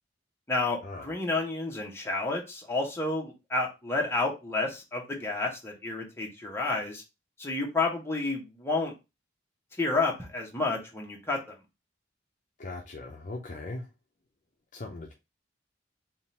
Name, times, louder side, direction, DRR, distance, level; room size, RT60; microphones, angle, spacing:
voice 1, 0.5-7.0 7.4-8.9 9.8-11.5, left 3 dB, 15° left, 1.1 m, -30 dB
voice 2, 12.6-13.9 14.7-15.1, left 2 dB, 40° left, 0.6 m, -39 dB
3.7 x 2.5 x 4.2 m
head